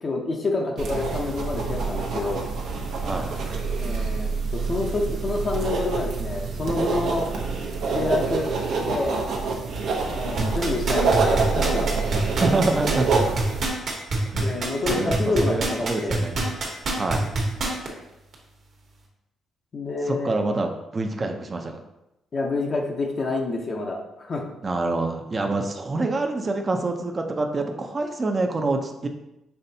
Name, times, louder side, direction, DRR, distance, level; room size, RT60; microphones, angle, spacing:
voice 1, 0.0-2.5 3.8-7.3 7.9-9.2 10.1-11.9 14.3-16.2 19.7-20.3 22.3-24.5, left 3 dB, 45° left, 0 dB, 0.7 m, -28 dB
sound 1, 0.8-13.7, right 4 dB, 75° right, 0.8 m, -26 dB
sound 2, 10.4-17.9 18.3-18.4, right 3 dB, 55° right, 1.2 m, -25 dB
voice 2, 12.4-13.3 14.3-16.4 16.9-17.2 20.0-21.8 24.6-29.1, right 2 dB, 30° right, 4 dB, 0.6 m, -26 dB
5.6 x 3.2 x 2.7 m, 0.91 s
cardioid pair, 90°, 0 cm